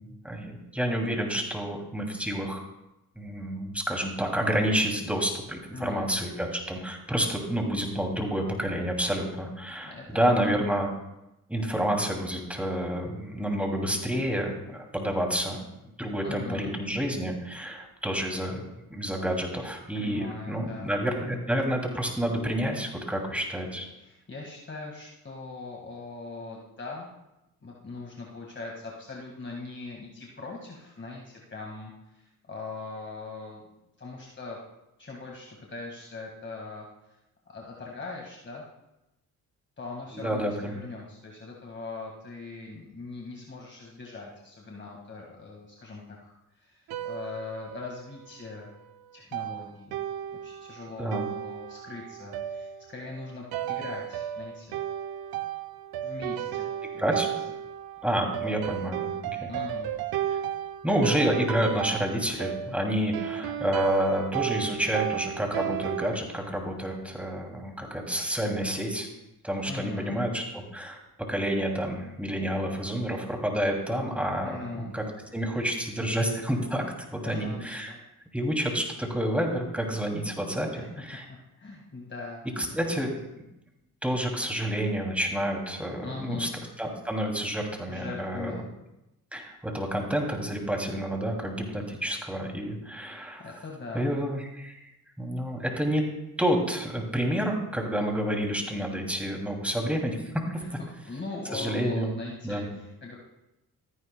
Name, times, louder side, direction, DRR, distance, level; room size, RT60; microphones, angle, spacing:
voice 1, 0.2-2.6 3.2-10.9 11.5-15.6 16.0-18.6 18.9-23.9 40.1-40.8 51.0-51.3 57.0-57.3 58.0-59.5 60.8-69.1 69.4-71.0 71.3-75.0 75.3-76.8 77.2-77.9 78.3-81.2 82.6-83.3 84.0-86.5 86.8-88.5 89.3-93.4 93.9-94.9 95.2-96.0 96.4-100.2 100.5-100.8 101.5-102.1 102.4-102.7, equal, 5° right, 1 dB, 2.6 m, -29 dB
voice 2, 5.7-6.1 9.8-10.4 16.2-16.7 19.9-20.9 24.0-27.1 27.6-33.7 34.0-34.6 35.0-36.9 37.5-38.6 39.8-48.7 49.1-50.0 50.4-54.8 56.0-57.0 59.5-59.9 69.7-70.2 74.4-74.9 77.2-78.0 80.7-80.9 81.5-83.1 86.0-86.5 87.9-88.7 93.1-94.1 100.6-103.2, left 3 dB, 30° left, -2 dB, 1.8 m, -41 dB
sound 1, 46.9-48.4 49.3-66.2, right 11 dB, 75° right, 0.7 m, -34 dB
14.5 x 9.5 x 2.2 m, 0.91 s
supercardioid pair, 55°, 36 cm